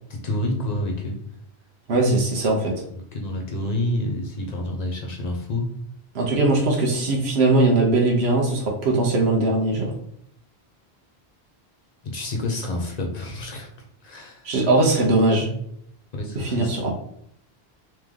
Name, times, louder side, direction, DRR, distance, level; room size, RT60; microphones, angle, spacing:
voice 1, 0.1-1.2 2.9-5.7 12.1-13.7 14.0-14.4 14.9-15.0 16.1-16.7, left 1 dB, 45° left, 1 dB, 0.8 m, -28 dB
voice 2, 1.9-2.7 6.1-9.9 14.4-15.5 16.3-16.9, right 2 dB, 80° right, 0 dB, 1.1 m, -20 dB
3.3 x 3.0 x 3.7 m, 0.70 s
omnidirectional pair, 1.1 m